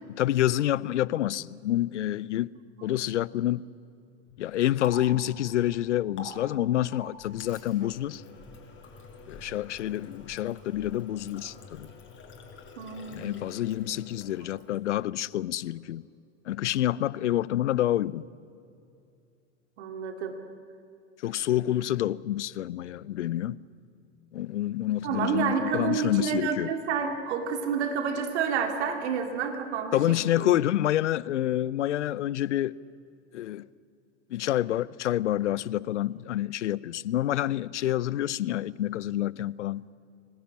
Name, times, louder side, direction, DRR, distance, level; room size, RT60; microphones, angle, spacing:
voice 1, 0.1-2.5 2.8-3.7 4.4-8.2 9.3-11.9 13.1-16.1 16.5-18.3 21.2-23.6 24.3-26.7 29.9-32.7 33.3-33.7 34.3-39.9, left 13 dB, 80° left, 0.6 m, -28 dB
Water tap faucet, 4.3-15.1, left 3 dB, 35° left, 5.0 m, -47 dB
voice 2, 12.8-13.5 19.8-20.4 25.0-30.0 30.3-30.5, right 6 dB, 70° right, 2.6 m, -29 dB
24.5 x 19.5 x 8.5 m
hypercardioid pair, 90°, 35 cm